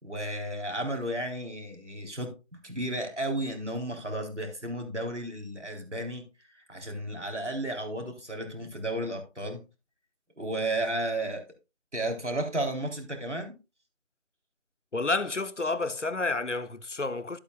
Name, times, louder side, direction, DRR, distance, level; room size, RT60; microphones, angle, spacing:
voice 1, 0.0-6.2 6.7-9.6 10.4-11.4 11.9-13.6, right 1 dB, 65° right, 4.0 m, -33 dB
voice 2, 14.9-17.4, left 3 dB, 70° left, 0.9 m, -30 dB
12.5 x 8.8 x 2.4 m
figure-of-eight pair, 180°, 37 cm